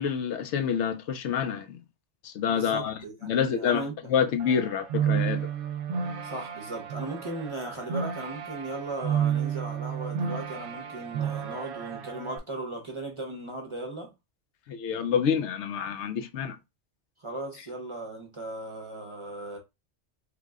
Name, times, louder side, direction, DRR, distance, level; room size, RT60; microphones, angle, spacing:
voice 1, 0.0-1.8 2.2-3.8 4.1-5.5 14.7-16.6, left 7 dB, 75° left, 0.9 m, -27 dB
voice 2, 2.5-4.0 6.2-14.1 17.2-19.6, right 2 dB, 30° right, 0.7 m, -37 dB
sound 1, 4.4-12.4, right 8 dB, 80° right, 0.9 m, -31 dB
3.4 x 2.1 x 3.5 m
omnidirectional pair, 1.2 m